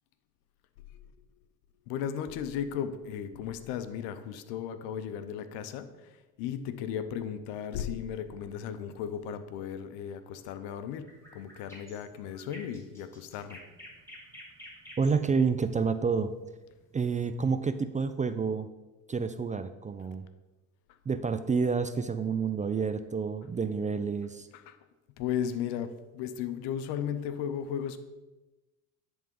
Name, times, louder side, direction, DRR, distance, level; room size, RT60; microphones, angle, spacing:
voice 1, 1.9-13.6 24.5-24.8 25.2-28.0, left 8 dB, 75° left, 11 dB, 0.8 m, -35 dB
sound 1, 11.1-17.2, equal, 5° left, 2.8 m, -51 dB
voice 2, 15.0-16.3 16.9-18.7 19.1-20.2 21.1-24.5, right 5 dB, 20° right, 10 dB, 0.3 m, -29 dB
10.5 x 3.7 x 5.3 m, 1.1 s
supercardioid pair, 70°, 41 cm